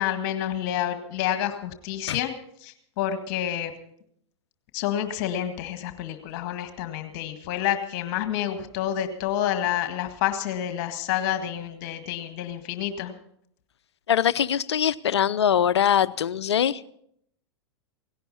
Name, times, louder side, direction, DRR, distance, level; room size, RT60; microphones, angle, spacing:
voice 1, 0.0-2.3 2.6-3.7 4.7-13.1, left 11 dB, 45° left, 8 dB, 1.8 m, -28 dB
voice 2, 14.1-16.9, left 9 dB, 70° left, 17 dB, 0.6 m, -22 dB
18.0 x 17.0 x 4.2 m, 0.69 s
figure-of-eight pair, 95°, 15 cm